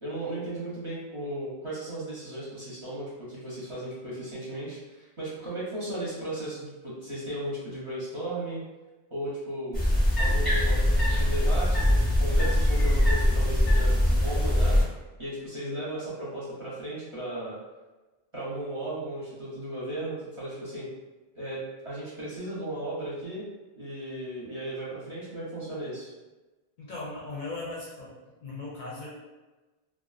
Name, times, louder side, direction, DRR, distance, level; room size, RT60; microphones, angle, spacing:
voice 1, 0.0-8.6 9.1-9.8 10.2-14.8 15.2-17.6 18.3-20.9 21.4-23.5 23.8-26.1, right 1 dB, 35° right, -8 dB, 0.7 m, -35 dB
sound 1, 9.7-14.8, left 1 dB, ahead, 0.7 m, -22 dB
voice 2, 26.8-28.1 28.4-29.1, left 2 dB, 60° left, -5 dB, 0.6 m, -38 dB
2.3 x 2.2 x 2.4 m, 1.2 s
omnidirectional pair, 1.0 m